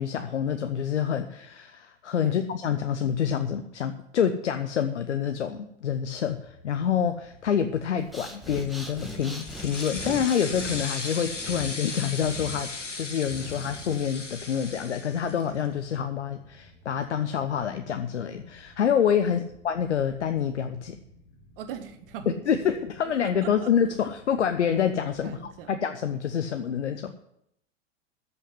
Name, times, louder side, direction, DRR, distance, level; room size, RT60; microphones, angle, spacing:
voice 1, 0.0-12.7 13.0-19.4 19.6-21.0 22.5-25.4 25.7-27.1, left 8 dB, 70° left, 8 dB, 1.0 m, -27 dB
sound 1, 6.1-25.6, left 1 dB, 30° left, 3.6 m, -56 dB
Breathing, 8.0-14.1, equal, ahead, 1.6 m, -41 dB
sound 2, 8.7-15.6, left 3 dB, 85° left, 1.7 m, -37 dB
voice 2, 21.6-22.6 23.0-23.7 25.2-25.8, right 8 dB, 50° right, 8 dB, 1.5 m, -40 dB
14.0 x 5.7 x 9.7 m, 0.77 s
figure-of-eight pair, 95°, 36 cm